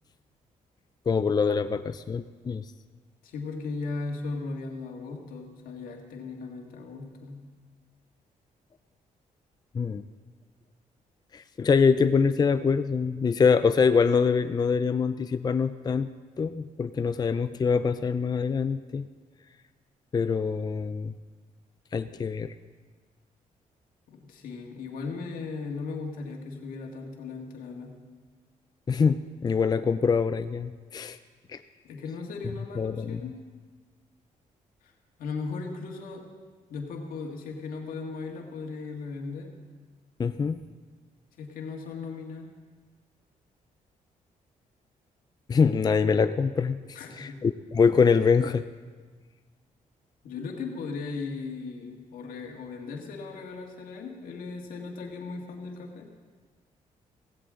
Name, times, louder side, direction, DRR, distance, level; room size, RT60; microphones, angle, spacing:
voice 1, 1.1-2.6 9.7-10.0 11.3-16.1 16.4-19.1 20.1-21.1 21.9-22.5 28.9-31.2 31.5-31.6 32.8-33.2 40.2-40.6 45.5-48.6, left 5 dB, 30° left, 11 dB, 0.4 m, -24 dB
voice 2, 3.2-7.4 24.1-27.9 31.8-33.3 34.8-34.9 35.2-36.3 36.7-39.5 41.4-42.5 46.9-47.4 50.2-56.1, left 4 dB, 85° left, 1 dB, 2.1 m, -37 dB
16.5 x 16.0 x 3.8 m, 1.5 s
cardioid pair, 95°, 14 cm